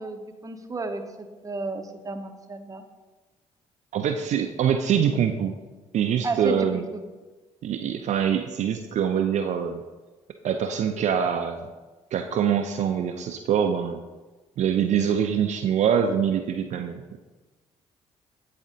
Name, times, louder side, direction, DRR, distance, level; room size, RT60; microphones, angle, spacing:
voice 1, 0.0-2.8 6.2-7.0, right 3 dB, 25° right, 7 dB, 0.7 m, -33 dB
voice 2, 3.9-5.5 5.9-6.9 7.6-9.8 10.4-11.7 12.1-14.0 14.6-17.0, right 8 dB, 55° right, 6 dB, 0.4 m, -24 dB
8.5 x 4.0 x 2.7 m, 1.2 s
supercardioid pair, 55°, 14 cm